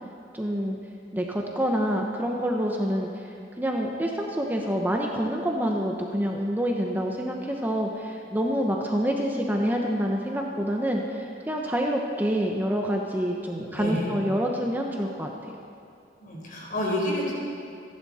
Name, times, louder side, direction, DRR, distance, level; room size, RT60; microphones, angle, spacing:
voice 1, 0.3-0.8 1.1-3.3 3.6-15.3, equal, 10° right, 0 dB, 1.0 m, -27 dB
voice 2, 13.7-14.2 16.2-17.3, left 1 dB, 50° left, -3 dB, 4.5 m, -29 dB
26.5 x 11.0 x 4.3 m, 2.5 s
head